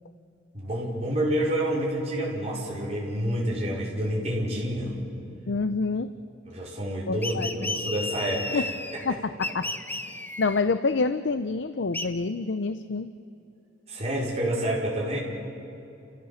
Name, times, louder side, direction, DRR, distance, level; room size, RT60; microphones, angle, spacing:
voice 1, 0.5-4.9 6.5-8.7 9.1-9.2 13.9-15.2, right 1 dB, 35° right, -4 dB, 5.1 m, -28 dB
voice 2, 5.5-6.1 7.1-7.5 8.5-8.6 9.1-9.7 10.0-13.1, left 4 dB, 70° left, 11 dB, 0.6 m, -27 dB
sound 1, 7.2-9.1 9.4-10.6 11.9-12.1, left 2 dB, 10° left, 1.0 m, -33 dB
29.5 x 15.5 x 7.3 m, 2.8 s
head